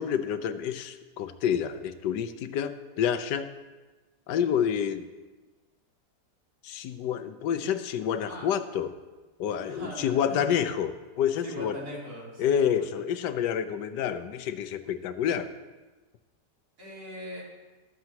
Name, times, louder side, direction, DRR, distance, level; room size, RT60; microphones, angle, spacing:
voice 1, 0.0-3.5 4.3-5.1 6.6-8.9 9.4-11.8 12.4-15.5, left 8 dB, 85° left, 11 dB, 1.3 m, -28 dB
voice 2, 9.6-10.5 11.4-13.1 16.8-17.4, equal, 70° right, -5 dB, 3.7 m, -41 dB
13.5 x 13.0 x 2.9 m, 1.2 s
omnidirectional pair, 1.8 m